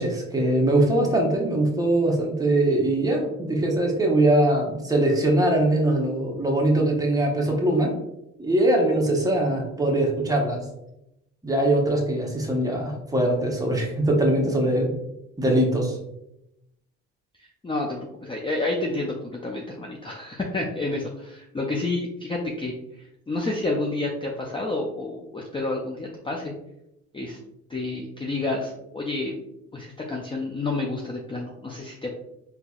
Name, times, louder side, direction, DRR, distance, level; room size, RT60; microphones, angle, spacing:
voice 1, 0.0-7.9 8.4-10.6 11.4-14.9 15.4-16.0, right 1 dB, 10° right, -1 dB, 0.9 m, -22 dB
voice 2, 17.6-22.8 23.3-26.5 27.1-27.4 27.7-29.3 29.7-32.1, left 2 dB, 15° left, 0 dB, 0.4 m, -29 dB
3.7 x 2.8 x 2.3 m, 0.85 s
cardioid pair, 90°, 30 cm